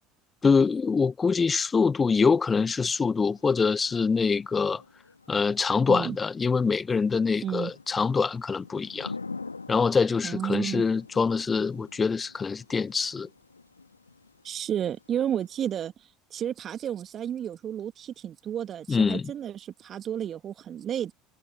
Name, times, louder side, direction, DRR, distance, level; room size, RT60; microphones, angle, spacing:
voice 1, 0.4-4.8 5.3-9.1 9.7-13.3 18.9-19.3, left 5 dB, 25° left, 0.9 m, -24 dB
Thunder / Rain, 3.2-15.9, left 4 dB, 90° left, 2.1 m, -47 dB
voice 2, 10.2-10.8 14.4-15.9 16.3-21.1, right 9 dB, 40° right, 2.2 m, -32 dB
figure-of-eight pair, 70°, 0 cm